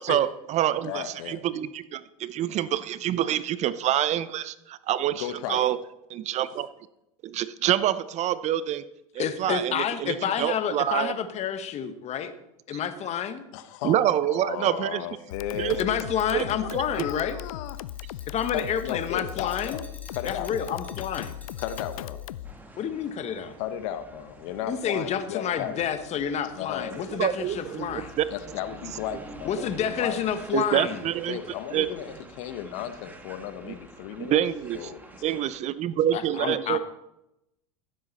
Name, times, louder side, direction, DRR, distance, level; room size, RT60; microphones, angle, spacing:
voice 1, 0.0-5.8 6.1-6.7 7.2-8.8 9.1-11.1 13.8-15.0 15.6-15.8 16.3-16.4 27.1-28.2 30.5-31.4 31.7-31.9 34.2-34.9 35.2-36.8, right 11 dB, 40° right, 16 dB, 0.6 m, -26 dB
voice 2, 0.8-1.4 5.2-5.7 13.5-16.0 16.6-17.8 18.1-18.2 18.5-19.8 20.1-20.7 21.6-22.2 23.6-26.0 26.5-27.1 28.3-30.2 31.3-34.4 34.7-35.1, left 10 dB, 65° left, 11 dB, 1.1 m, -35 dB
voice 3, 9.2-12.3 12.7-13.4 15.8-17.4 18.3-19.8 20.2-21.3 22.8-23.5 24.7-28.1 29.4-31.0 36.1-36.8, left 8 dB, 40° left, 10 dB, 1.2 m, -29 dB
sound 1, 15.3-22.5, left 13 dB, 80° left, 0.4 m, -38 dB
Glass, 16.1-22.4, left 2 dB, 10° left, 1.8 m, -53 dB
sound 2, 22.4-35.6, right 2 dB, 10° right, 1.5 m, -48 dB
15.5 x 7.6 x 4.2 m, 0.86 s
hypercardioid pair, 95°, 18 cm